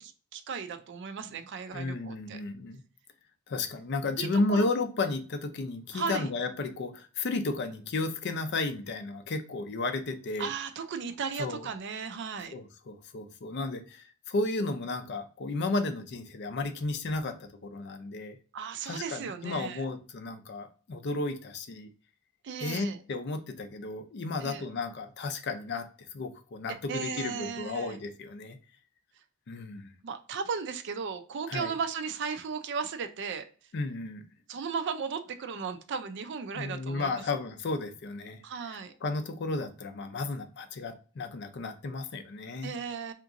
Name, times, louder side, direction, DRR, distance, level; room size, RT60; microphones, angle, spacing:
voice 1, 0.0-2.4 4.2-4.7 5.9-6.3 10.4-12.5 18.5-19.8 22.4-23.0 24.4-24.6 26.7-28.0 30.0-33.5 34.5-37.2 38.4-38.9 42.6-43.1, right 5 dB, 55° right, 9 dB, 0.4 m, -36 dB
voice 2, 1.7-2.8 3.5-10.5 11.4-11.7 12.5-18.4 18.9-21.9 22.6-25.9 26.1-28.6 29.5-29.9 31.5-31.7 33.7-34.2 36.6-42.7, left 3 dB, 50° left, 8 dB, 0.4 m, -33 dB
3.5 x 2.9 x 2.5 m, 0.38 s
head